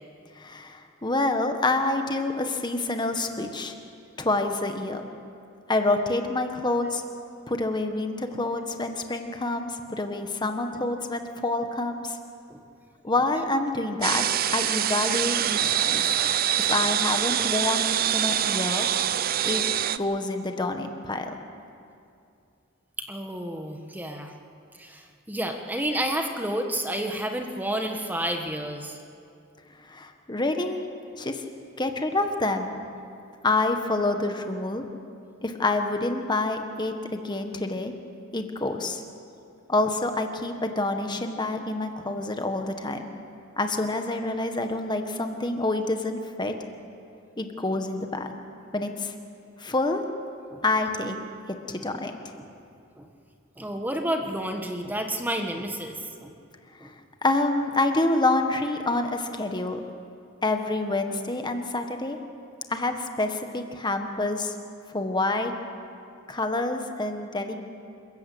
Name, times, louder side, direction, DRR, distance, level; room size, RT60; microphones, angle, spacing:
voice 1, 0.4-3.7 4.2-5.1 5.7-7.0 7.5-12.2 13.0-14.2 14.5-16.0 16.6-18.9 19.4-21.3 29.9-30.8 31.2-31.4 31.8-32.7 33.4-34.8 35.4-37.9 38.3-39.0 39.7-43.0 43.6-46.5 47.4-48.3 48.7-49.1 49.6-50.0 50.6-51.2 51.7-52.1 57.2-59.8 60.4-62.2 62.7-64.5 64.9-65.5 66.3-67.5, left 2 dB, 20° left, 5 dB, 1.5 m, -27 dB
sound 1, 14.0-20.0, right 10 dB, 45° right, 0.6 m, -25 dB
voice 2, 23.1-24.3 24.8-25.0 25.3-29.0 50.5-50.6 52.3-52.5 53.0-53.1 53.6-55.9 56.2-56.3 56.8-56.9, right 1 dB, 10° right, 4 dB, 1.5 m, -30 dB
28.0 x 14.5 x 8.6 m, 2.5 s
head